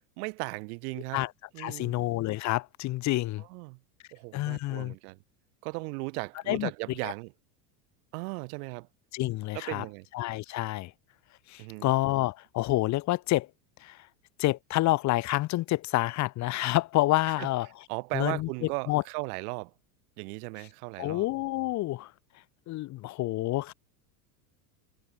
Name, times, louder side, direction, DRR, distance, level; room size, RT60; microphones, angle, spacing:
voice 1, 0.2-1.2 1.5-2.0 3.4-3.8 4.1-5.2 5.6-7.3 8.1-8.9 9.5-10.1 11.6-11.9 17.4-17.5 17.9-19.7 20.2-21.3, right 29 dB, 70° right, 4.2 m, -37 dB
voice 2, 1.6-3.4 4.3-4.9 6.5-6.7 9.1-9.8 10.1-10.9 11.5-13.5 13.8-14.1 14.4-17.7 18.1-18.5 18.9-19.0 21.0-22.1 22.7-23.7, left 17 dB, 35° left, 0.8 m, -28 dB
supercardioid pair, 125°, 47 cm